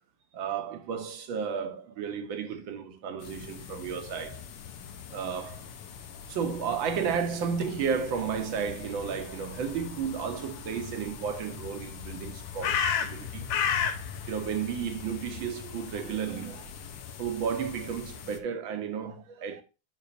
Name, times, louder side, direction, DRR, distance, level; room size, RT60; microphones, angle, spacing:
voice 1, 0.3-4.4 5.1-5.7 6.3-13.5 14.3-16.7 17.2-19.6, right 7 dB, 70° right, 1.7 m, -33 dB
sound 1, 3.2-18.4, left 7 dB, 80° left, 1.8 m, -37 dB
8.3 x 6.5 x 2.5 m
omnidirectional pair, 2.4 m